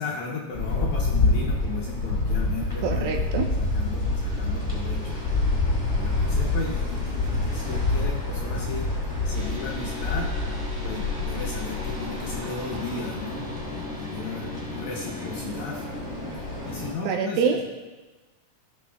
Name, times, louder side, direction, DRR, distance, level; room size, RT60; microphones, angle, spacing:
voice 1, 0.0-3.3 3.6-5.2 6.0-8.9 9.3-10.3 10.8-13.5 13.7-15.9 16.6-17.6, left 4 dB, 70° left, -2 dB, 1.9 m, -35 dB
sound 1, 0.5-16.9, left 2 dB, 10° left, 1.8 m, -27 dB
voice 2, 2.8-3.4 17.0-17.6, right 6 dB, 85° right, 2 dB, 2.4 m, -25 dB
sound 2, 9.3-15.5, left 3 dB, 30° right, 1.3 m, -41 dB
14.5 x 6.2 x 2.3 m, 1.2 s
omnidirectional pair, 4.2 m